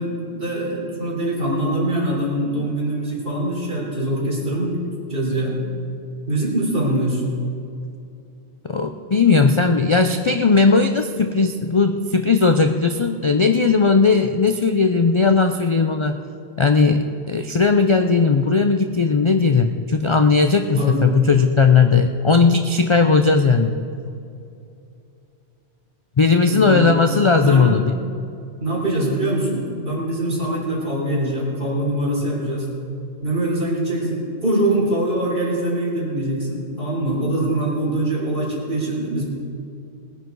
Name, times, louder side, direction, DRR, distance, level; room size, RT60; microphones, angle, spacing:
voice 1, 0.0-4.8 5.1-5.6 6.3-7.2 20.8-21.0 26.4-26.9 27.4-27.8 28.6-32.7 33.2-39.2, right 1 dB, 55° right, -4 dB, 3.9 m, -23 dB
voice 2, 8.7-16.2 16.6-23.7 26.2-27.8, left 4 dB, 40° left, 6 dB, 0.4 m, -17 dB
20.0 x 10.0 x 4.6 m, 2.6 s
omnidirectional pair, 1.1 m